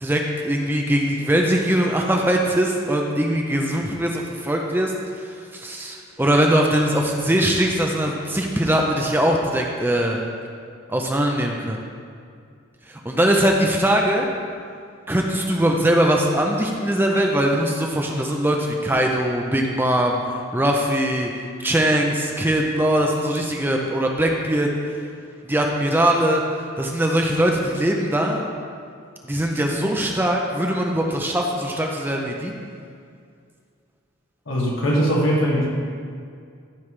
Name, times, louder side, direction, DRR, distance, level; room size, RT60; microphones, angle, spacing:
voice 1, 0.0-10.2 10.9-11.8 12.9-14.3 15.1-20.2 20.5-21.3 21.6-24.7 25.4-26.4 26.8-28.4 29.2-32.5, right 1 dB, 10° right, 1 dB, 0.5 m, -21 dB
voice 2, 34.5-35.7, equal, 70° left, -3 dB, 1.8 m, -20 dB
14.5 x 5.6 x 3.3 m, 2.2 s
head